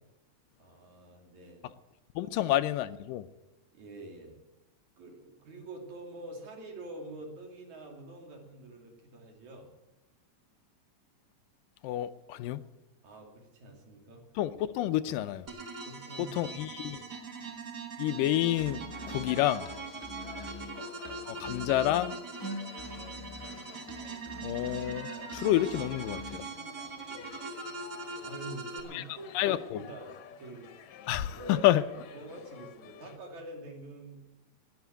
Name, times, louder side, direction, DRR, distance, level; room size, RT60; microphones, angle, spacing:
voice 1, 0.6-1.7 2.2-2.3 3.7-4.4 5.0-9.7 13.0-14.3 15.9-17.1 20.4-20.7 26.8-27.3 28.2-30.7 31.3-31.7 32.1-34.2, right 2 dB, 60° right, 1 dB, 4.1 m, -46 dB
voice 2, 2.2-3.3 11.8-12.7 14.4-15.5 16.3-17.0 18.0-19.7 21.3-22.2 24.4-26.5 28.9-29.0 29.3-29.8 31.1-31.8, left 13 dB, 85° left, 12 dB, 2.3 m, -29 dB
sound 1, 15.5-28.8, right 4 dB, 40° right, 1.8 m, -42 dB
Musical instrument, 18.5-26.5, left 2 dB, 10° left, 0.7 m, -45 dB
sound 2, 18.9-33.2, left 8 dB, 65° left, 2.1 m, -50 dB
20.0 x 7.0 x 9.0 m, 1.0 s
omnidirectional pair, 3.9 m